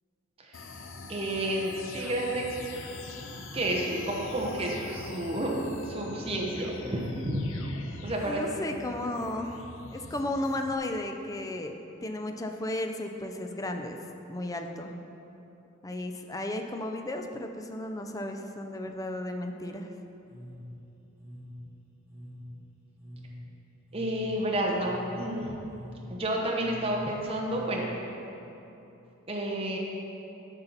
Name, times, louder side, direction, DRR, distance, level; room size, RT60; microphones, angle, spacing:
voice 1, 0.4-2.6 3.5-7.5 8.0-8.4 8.7-8.9 23.9-25.6 26.1-27.9 29.3-29.8, right 1 dB, 30° right, -2 dB, 0.9 m, -31 dB
sound 1, 0.5-10.8, left 2 dB, 70° left, 0.7 m, -43 dB
voice 2, 8.3-9.5 9.9-11.7 12.0-14.0 14.3-15.0 15.8-19.9, left 1 dB, 15° left, 4 dB, 0.5 m, -34 dB
sound 2, 20.2-28.1, equal, 10° right, 2.2 m, -46 dB
12.0 x 5.6 x 4.0 m, 3.0 s
head